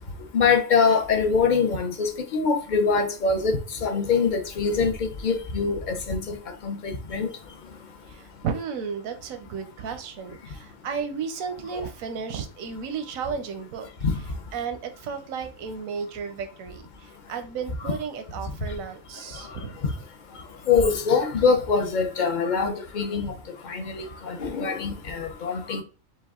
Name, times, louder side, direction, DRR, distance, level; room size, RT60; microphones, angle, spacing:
voice 1, 0.3-3.5 3.8-4.9 5.2-6.2 6.6-7.3 17.8-17.9 20.7-23.3 23.7-25.8, left 5 dB, 45° left, 0.7 m, -23 dB
voice 2, 8.1-13.9 14.5-19.8, right 6 dB, 85° right, 1.1 m, -33 dB
5.4 x 2.3 x 3.6 m
omnidirectional pair, 1.4 m